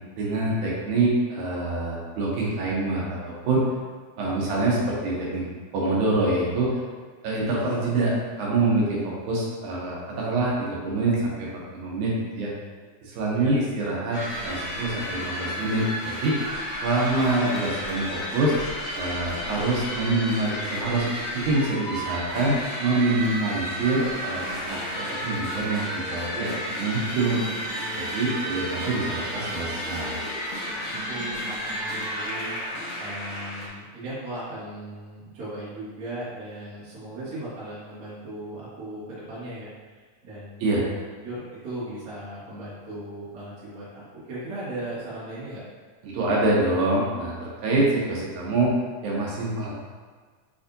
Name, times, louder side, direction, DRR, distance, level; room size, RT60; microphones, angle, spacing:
voice 1, 0.2-3.6 4.2-5.4 5.7-6.7 7.2-12.5 13.0-16.4 16.8-18.6 18.9-21.0 21.3-27.4 28.0-30.2 40.6-40.8 46.0-48.7 49.0-49.7, right 2 dB, 85° right, -4 dB, 2.3 m, -25 dB
voice 2, 13.3-13.6 28.2-28.8 30.9-32.5 33.0-45.6, right 1 dB, 40° right, -10 dB, 1.5 m, -38 dB
sound 1, 14.1-33.7, equal, 75° left, 2.1 m, -32 dB
sound 2, 24.7-32.7, right 1 dB, 70° right, 1.2 m, -39 dB
6.7 x 2.6 x 2.6 m, 1.5 s
omnidirectional pair, 3.4 m